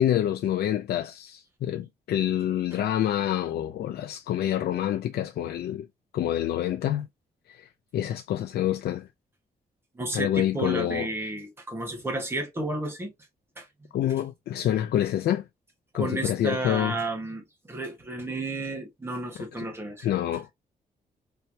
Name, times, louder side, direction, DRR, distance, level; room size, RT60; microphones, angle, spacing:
voice 1, 0.0-5.9 6.1-7.1 7.5-7.7 7.9-9.1 10.1-11.1 13.9-15.4 15.9-17.0 20.0-20.5, left 11 dB, 85° left, 0.5 m, -27 dB
voice 2, 9.9-13.1 13.6-13.7 15.9-20.3, right 2 dB, 15° right, 1.4 m, -32 dB
4.4 x 3.3 x 2.8 m
wide cardioid pair, 165°, 16 cm